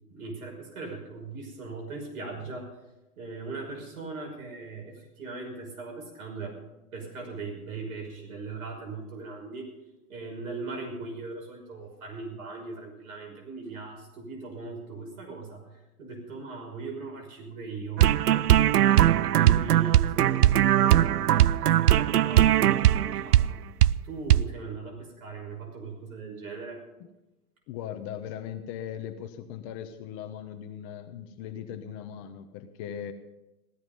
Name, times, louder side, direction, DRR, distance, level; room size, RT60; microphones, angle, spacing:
voice 1, 0.1-2.8 3.2-6.6 6.9-9.7 10.1-18.3 18.7-23.6 24.0-26.8, right 3 dB, 65° right, 1 dB, 6.0 m, -39 dB
sound 1, 18.0-23.5 23.8-24.0 24.3-24.5, right 12 dB, 85° right, 0.6 m, -20 dB
voice 2, 27.7-33.1, left 9 dB, 30° left, 8 dB, 1.0 m, -39 dB
16.5 x 14.0 x 5.4 m, 0.99 s
hypercardioid pair, 130°, 45 cm